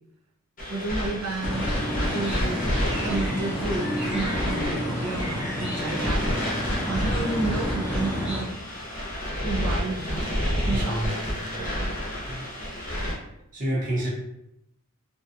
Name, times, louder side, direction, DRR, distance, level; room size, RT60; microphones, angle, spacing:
sound 1, 0.6-13.1, equal, 40° left, 0.7 m, -29 dB
voice 1, 0.7-1.7 2.1-6.4 6.8-8.6 9.4-10.3 10.6-11.1 11.6-11.9, right 3 dB, 85° right, 0 dB, 0.5 m, -31 dB
sound 2, 1.4-8.4, equal, 5° right, 0.7 m, -30 dB
voice 2, 10.7-11.1 12.3-12.4 13.5-14.1, right 1 dB, 35° right, -4 dB, 0.7 m, -28 dB
2.6 x 2.2 x 2.4 m, 0.84 s
head